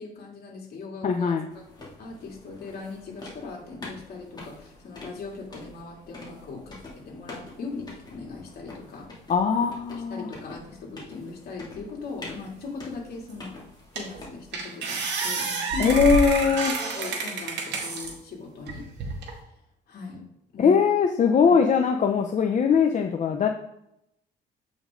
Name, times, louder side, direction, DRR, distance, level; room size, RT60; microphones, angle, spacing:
voice 1, 0.0-1.6 2.0-9.1 10.1-13.5 13.9-16.1 16.9-18.8 19.9-20.2 20.5-20.8, left 4 dB, 55° left, -1 dB, 2.6 m, -39 dB
voice 2, 1.0-1.4 9.3-10.3 15.8-16.8 20.6-23.5, left 6 dB, 40° left, 3 dB, 0.7 m, -21 dB
sound 1, 1.5-14.6, left 2 dB, 20° left, 2.6 m, -46 dB
sound 2, 13.3-13.4 14.0-14.2 14.5-18.1 18.7-19.3, right 3 dB, 70° right, 2.0 m, -29 dB
7.9 x 5.3 x 3.7 m, 0.81 s
cardioid pair, 110°, 19 cm